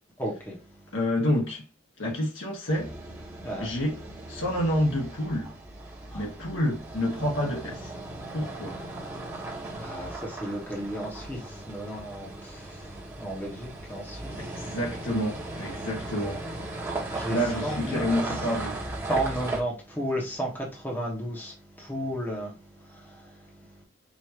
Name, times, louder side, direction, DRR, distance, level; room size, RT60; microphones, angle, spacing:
voice 1, 0.2-0.6 3.4-3.7 6.1-6.2 9.8-12.9 13.2-14.5 17.1-17.4 17.6-18.2 19.1-22.5 22.9-23.3, right 1 dB, 10° left, 1.2 m, -33 dB
voice 2, 0.9-1.6 2.0-3.0 3.6-4.0 4.3-5.6 6.1-7.9 8.3-8.8 14.4-16.4 17.3-18.8, left 1 dB, 75° left, 1.7 m, -28 dB
sound 1, 2.7-19.6, right 2 dB, 15° right, 1.3 m, -37 dB
4.9 x 2.8 x 2.9 m
head